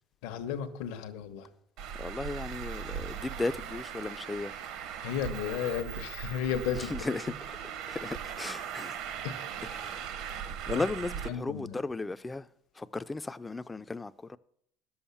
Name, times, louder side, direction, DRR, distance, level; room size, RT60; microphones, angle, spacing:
voice 1, 0.2-1.5 5.0-7.2 9.2-9.6 10.7-10.8 11.3-11.8, left 9 dB, 80° left, 1.1 m, -34 dB
Traffic noise roadway noise, 1.8-11.3, right 8 dB, 65° right, 0.9 m, -39 dB
voice 2, 2.0-4.5 6.9-7.6 7.9-9.0 9.6-10.1 10.5-12.5 12.8-14.4, left 3 dB, 10° left, 0.3 m, -36 dB
11.0 x 7.1 x 7.0 m
cardioid pair, 140°, 0 cm